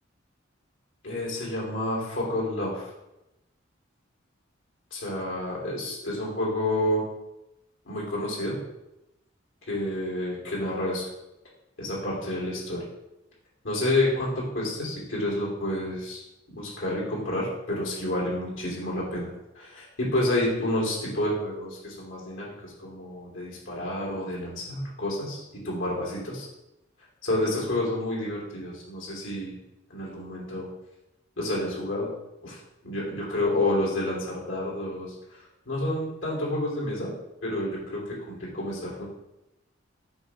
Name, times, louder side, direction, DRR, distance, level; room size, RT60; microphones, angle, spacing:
voice 1, 1.0-2.9 4.9-7.0 7.9-8.6 9.7-11.1 11.8-12.8 13.6-16.2 16.5-26.5 27.2-29.6 29.9-30.7 31.4-32.1 32.4-37.1 37.4-39.0, left 1 dB, 75° left, -5 dB, 2.7 m, -29 dB
8.0 x 3.0 x 5.7 m, 0.91 s
head